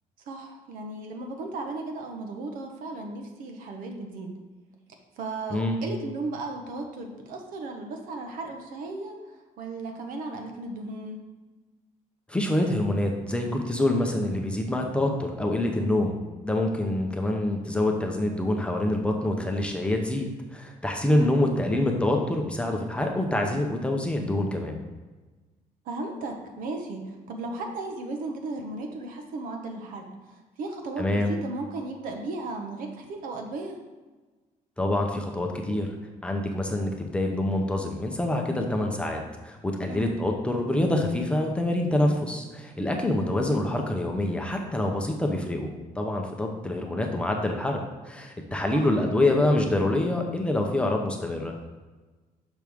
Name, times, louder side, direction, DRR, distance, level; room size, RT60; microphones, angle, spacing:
voice 1, 0.3-4.3 5.2-11.2 21.1-21.3 25.8-33.8 39.9-40.1 48.7-49.0, right 2 dB, 80° right, 3 dB, 1.1 m, -35 dB
voice 2, 12.3-16.2 16.4-24.8 31.0-31.3 34.8-35.9 36.2-45.7 46.0-47.8 48.0-51.6, left 1 dB, 10° left, 2 dB, 0.7 m, -26 dB
6.1 x 6.0 x 3.5 m, 1.2 s
cardioid pair, 165°, 14 cm